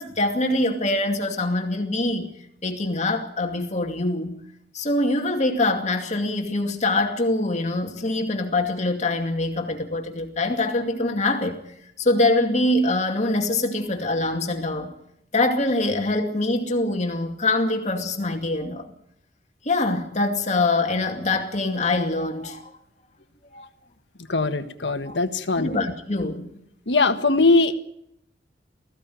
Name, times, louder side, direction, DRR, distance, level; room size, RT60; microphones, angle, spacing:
voice 1, 0.0-2.3 2.6-4.4 4.7-11.6 12.0-14.9 15.3-18.9 19.6-22.7 23.5-23.6 25.1-25.2 25.6-26.5, left 2 dB, 40° left, 2.4 m, -24 dB
voice 2, 24.3-25.7 26.9-27.8, left 3 dB, 80° left, 1.6 m, -21 dB
20.0 x 15.5 x 9.3 m
head